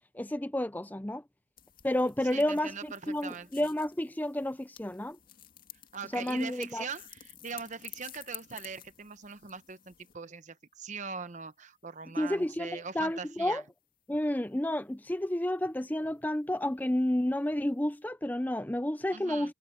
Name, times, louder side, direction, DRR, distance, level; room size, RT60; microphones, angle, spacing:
voice 1, 0.1-1.2 1.8-5.2 6.1-6.8 12.2-13.6 14.1-19.5, left 1 dB, 10° left, 0.6 m, -31 dB
sound 1, 1.6-10.2, left 12 dB, 45° left, 2.2 m, -52 dB
voice 2, 2.2-3.6 5.9-13.6 19.1-19.5, right 5 dB, 40° right, 0.9 m, -41 dB
head